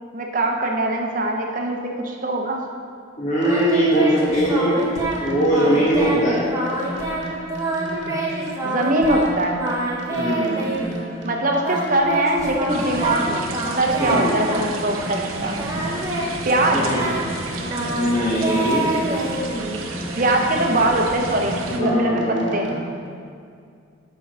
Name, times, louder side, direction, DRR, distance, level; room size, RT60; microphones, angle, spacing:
voice 1, 0.1-2.6 8.6-9.6 11.2-15.5 16.4-16.9 20.2-22.2 22.5-22.7, right 1 dB, 40° right, 1 dB, 0.8 m, -22 dB
voice 2, 3.2-4.8 5.2-6.4 10.1-10.6 14.0-14.4 16.7-17.0 17.9-18.9 20.7-20.9 21.7-22.7, equal, 35° left, -8 dB, 1.2 m, -21 dB
Singing, 3.4-5.2 5.5-6.2 6.5-7.2 7.5-9.3 9.6-11.0 11.6-15.2 15.5-20.0, right 1 dB, 15° right, 1.0 m, -27 dB
sound 1, 3.4-23.1, right 1 dB, 60° right, 1.2 m, -35 dB
sound 2, 12.7-21.8, right 3 dB, 80° right, 0.8 m, -33 dB
6.9 x 4.6 x 6.1 m, 2.3 s
head